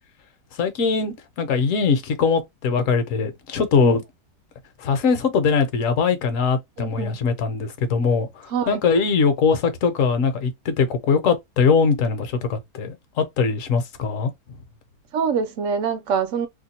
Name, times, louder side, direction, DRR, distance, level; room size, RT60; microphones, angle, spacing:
voice 1, 0.6-4.0 4.8-8.3 8.7-14.3, left 5 dB, 55° left, 1.1 m, -21 dB
voice 2, 6.8-7.2 8.5-8.8 15.1-16.5, right 6 dB, 60° right, 0.9 m, -25 dB
2.9 x 2.2 x 4.1 m
omnidirectional pair, 1.8 m